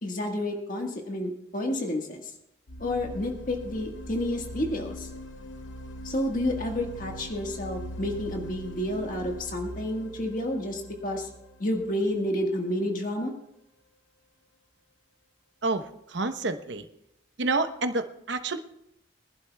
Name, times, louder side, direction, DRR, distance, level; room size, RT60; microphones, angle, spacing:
voice 1, 0.0-2.3 2.8-5.1 6.0-11.3 11.6-13.3, left 1 dB, 45° left, 1 dB, 1.6 m, -30 dB
sound 1, 2.7-12.5, equal, 85° left, 0.9 m, -41 dB
voice 2, 15.6-16.9 17.4-18.6, right 3 dB, 70° right, 8 dB, 0.9 m, -29 dB
24.0 x 11.5 x 2.3 m, 0.81 s
head